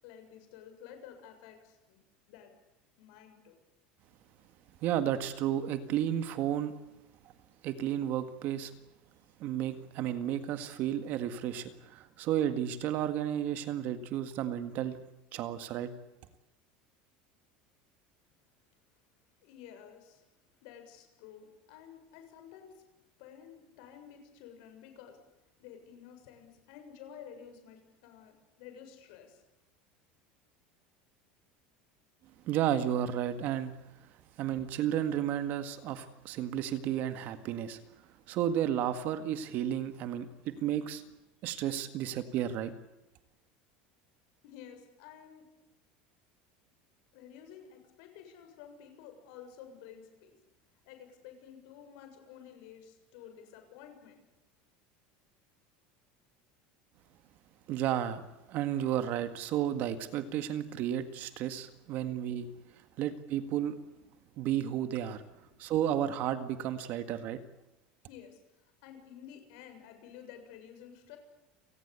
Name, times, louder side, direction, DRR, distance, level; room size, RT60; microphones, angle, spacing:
voice 1, 0.0-2.0 2.3-2.5 3.0-3.6 19.4-20.3 20.6-22.8 23.2-25.2 25.6-29.4 44.4-45.4 47.1-50.4 50.9-54.2 68.1-71.2, left 8 dB, 60° left, 6 dB, 7.2 m, -52 dB
voice 2, 4.8-6.7 7.6-8.7 9.4-15.0 15.3-15.9 32.5-33.7 34.4-37.8 38.3-41.0 41.4-42.7 57.7-58.2 58.5-62.5 63.0-63.8 64.4-65.2 65.6-67.4, right 10 dB, 40° right, 10 dB, 1.8 m, -32 dB
29.5 x 19.0 x 8.4 m, 0.98 s
cardioid pair, 175°, 5 cm